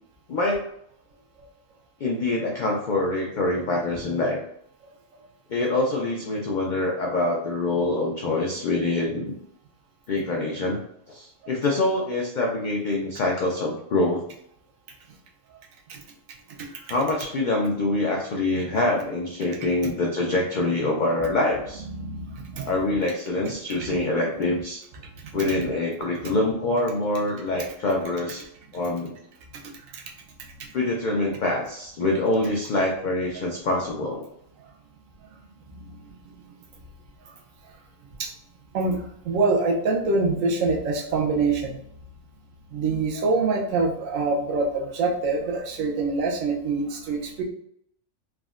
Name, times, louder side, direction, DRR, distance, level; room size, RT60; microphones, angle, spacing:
voice 1, 0.3-0.6 2.0-4.4 5.5-9.3 10.1-10.8 11.1-14.2 16.9-21.8 22.6-24.8 25.3-28.5 28.7-29.1 30.7-34.2, left 2 dB, 80° left, -1 dB, 0.4 m, -25 dB
voice 2, 21.9-22.8 23.8-24.0 25.2-25.5 29.9-30.0 35.8-36.0 38.2-38.3 38.7-41.8 42.7-47.4, right 3 dB, 85° right, 1 dB, 1.0 m, -25 dB
3.6 x 2.1 x 2.4 m, 0.71 s
omnidirectional pair, 1.3 m